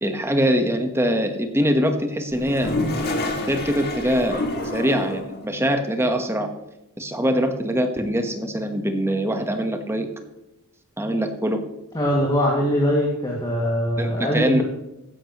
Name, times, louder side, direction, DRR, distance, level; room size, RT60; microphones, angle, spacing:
voice 1, 0.0-2.7 3.4-4.4 4.7-6.5 7.0-10.1 11.0-11.6 14.0-14.6, equal, 10° right, 6 dB, 1.2 m, -23 dB
Toilet flush, 2.3-5.4, left 2 dB, 45° left, 2.2 m, -27 dB
voice 2, 11.9-14.6, equal, 20° left, -3 dB, 2.2 m, -22 dB
15.0 x 11.0 x 3.1 m, 0.96 s
head